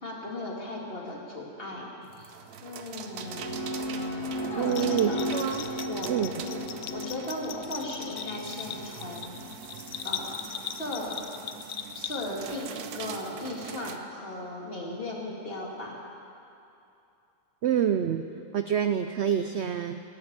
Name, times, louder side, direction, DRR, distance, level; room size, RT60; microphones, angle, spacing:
voice 1, 0.0-2.3 2.6-3.6 4.4-5.5 5.9-9.3 10.0-10.4 10.8-11.2 11.9-16.0, left 1 dB, 40° left, -2 dB, 2.5 m, -37 dB
sound 1, 2.0-14.0, right 8 dB, 85° right, 1.3 m, -44 dB
sound 2, 2.9-11.5, left 1 dB, 25° right, 4.2 m, -36 dB
voice 2, 4.6-5.6 6.1-6.3 17.6-18.2 18.5-20.0, right 9 dB, 65° right, 8 dB, 0.7 m, -27 dB
Bell, 4.7-12.6, left 9 dB, 65° left, 0.8 m, -39 dB
17.5 x 10.5 x 7.4 m, 2.7 s
omnidirectional pair, 1.6 m